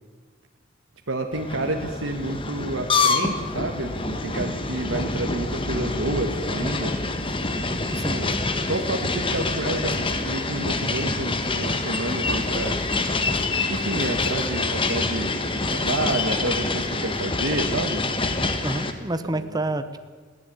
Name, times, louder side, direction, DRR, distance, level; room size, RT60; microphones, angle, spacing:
voice 1, 1.1-7.0 8.0-8.4 8.7-12.8 13.7-18.0 19.2-19.5, right 2 dB, 80° right, 3 dB, 1.6 m, -29 dB
sound 1, 1.3-18.9, left 3 dB, 25° left, 1.4 m, -26 dB
voice 2, 7.9-8.2 18.6-20.0, right 2 dB, 20° right, 10 dB, 1.1 m, -28 dB
21.0 x 15.0 x 8.6 m, 1.5 s
head